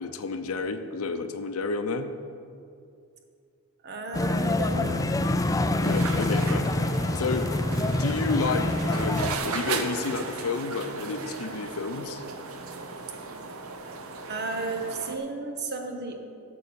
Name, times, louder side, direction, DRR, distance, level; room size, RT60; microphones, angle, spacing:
voice 1, 0.0-2.1 5.8-6.6 7.2-7.5 7.9-12.2, left 4 dB, 75° left, 9 dB, 0.7 m, -31 dB
voice 2, 3.8-5.1 14.2-16.2, right 3 dB, 50° right, 4 dB, 1.1 m, -33 dB
sound 1, 4.1-9.4, left 2 dB, 15° left, 0.4 m, -26 dB
sound 2, 5.8-15.2, right 4 dB, 70° right, 0.8 m, -36 dB
8.5 x 6.9 x 6.9 m, 2.4 s
head